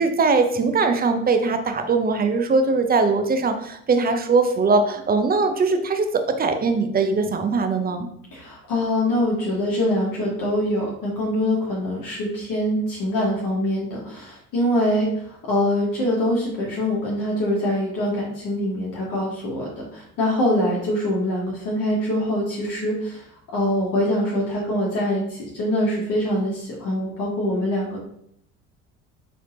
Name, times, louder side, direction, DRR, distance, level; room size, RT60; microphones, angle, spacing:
voice 1, 0.0-8.1, right 4 dB, 25° right, 7 dB, 0.5 m, -21 dB
voice 2, 8.3-28.0, left 1 dB, 50° left, -4 dB, 1.2 m, -24 dB
3.9 x 3.3 x 2.6 m, 0.70 s
hypercardioid pair, 60°, 41 cm